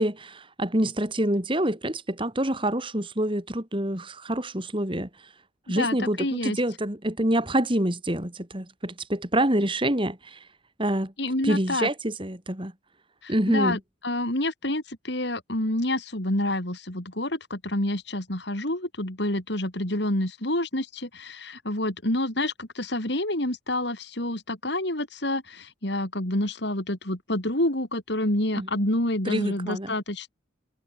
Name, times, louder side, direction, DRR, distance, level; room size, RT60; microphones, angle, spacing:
voice 1, 0.0-5.1 5.7-10.4 10.8-11.1 11.4-12.7 13.3-13.8 28.5-28.7 29.3-29.9, right 1 dB, 25° right, 3.1 m, -26 dB
voice 2, 5.7-6.6 11.2-11.9 13.2-13.8 14.0-30.3, left 1 dB, 60° left, 4.3 m, -28 dB
head